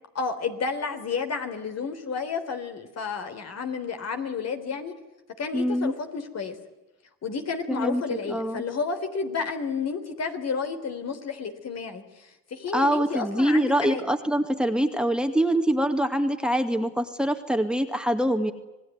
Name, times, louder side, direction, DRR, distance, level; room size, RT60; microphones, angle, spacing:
voice 1, 0.1-4.9 5.4-6.6 7.2-14.0, left 5 dB, 55° left, 7 dB, 3.7 m, -31 dB
voice 2, 5.5-5.9 7.7-8.6 12.7-18.5, right 1 dB, 5° right, 7 dB, 2.1 m, -24 dB
27.0 x 18.5 x 9.5 m, 1.0 s
cardioid pair, 90°, 30 cm